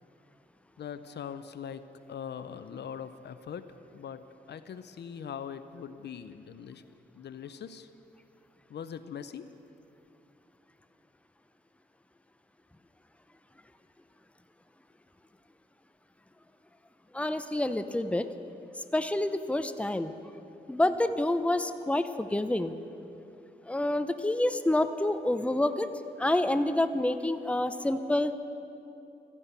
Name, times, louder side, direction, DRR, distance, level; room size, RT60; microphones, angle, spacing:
voice 1, 0.8-3.7 3.9-6.8 7.1-7.9 8.7-9.5, left 7 dB, 70° left, 12 dB, 0.6 m, -41 dB
voice 2, 17.1-18.3 18.9-20.1 20.7-22.7 23.7-25.9 26.2-28.3, left 1 dB, 5° left, 10 dB, 0.7 m, -28 dB
13.5 x 9.9 x 8.2 m, 2.8 s
cardioid pair, 60°, 18 cm